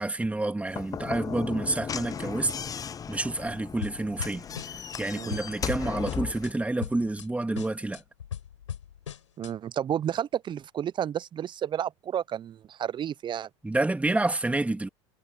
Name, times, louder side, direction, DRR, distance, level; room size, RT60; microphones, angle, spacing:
voice 1, 0.0-2.5 3.1-4.4 5.0-8.0 13.6-14.9, right 2 dB, 10° right, 2.4 m, -28 dB
Slam / Knock, 0.7-6.5, left 7 dB, 25° left, 0.5 m, -36 dB
sound 1, 3.8-5.0 5.3-6.5 6.8-7.3 7.6-9.5, left 9 dB, 90° left, 6.1 m, -39 dB
voice 2, 9.4-13.5, right 9 dB, 30° right, 0.6 m, -31 dB
hypercardioid pair, 85°, 15 cm